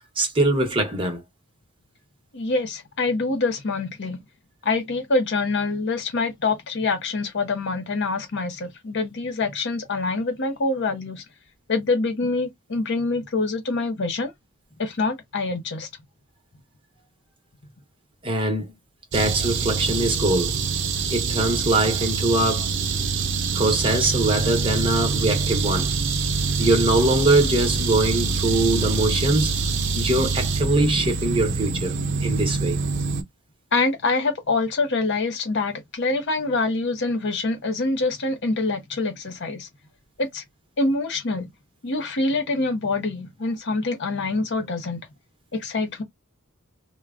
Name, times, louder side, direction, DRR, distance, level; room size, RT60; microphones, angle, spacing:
voice 1, 0.2-1.2 18.2-18.7 19.1-20.5 21.1-22.7 23.5-25.9 26.6-29.5 29.9-32.8, right 2 dB, 25° right, 0.9 m, -22 dB
voice 2, 2.3-4.2 4.6-11.2 11.7-14.3 14.8-15.9 33.7-39.7 40.2-40.4 40.8-41.5 41.8-45.1 45.5-46.0, left 3 dB, 55° left, 0.7 m, -25 dB
sound 1, 19.1-33.2, right 5 dB, 55° right, 0.6 m, -25 dB
3.3 x 2.2 x 2.4 m
head